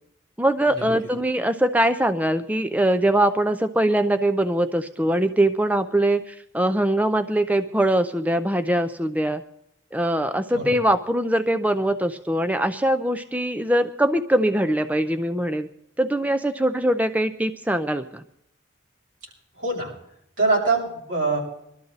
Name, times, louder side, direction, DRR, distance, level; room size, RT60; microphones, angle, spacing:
voice 1, 0.4-9.4 9.9-15.7 16.0-18.2, right 1 dB, 10° right, 9 dB, 0.5 m, -22 dB
voice 2, 19.6-19.9 20.4-21.4, right 3 dB, 80° right, -2 dB, 7.0 m, -23 dB
22.5 x 12.5 x 4.0 m, 0.76 s
head